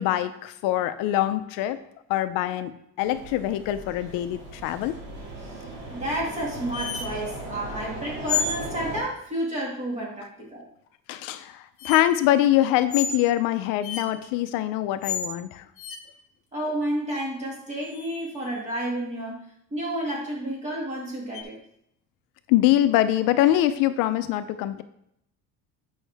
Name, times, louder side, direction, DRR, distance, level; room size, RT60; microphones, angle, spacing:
voice 1, 0.0-1.8 2.1-2.7 3.0-5.0 11.1-15.6 22.5-24.8, left 13 dB, 75° left, 11 dB, 0.6 m, -23 dB
sound 1, 3.0-9.0, right 2 dB, 50° right, 2.2 m, -38 dB
voice 2, 5.9-10.6 16.5-21.6, right 1 dB, 20° right, -3 dB, 2.0 m, -31 dB
sound 2, 6.7-7.1 8.3-8.6 10.9-11.0 11.8-12.0 12.9-13.2 13.8-14.1 15.0-15.3 15.8-16.0 17.8-18.4 21.3-21.4, left 6 dB, 40° left, 0.8 m, -29 dB
8.1 x 5.4 x 3.4 m, 0.73 s
cardioid pair, 175°, 34 cm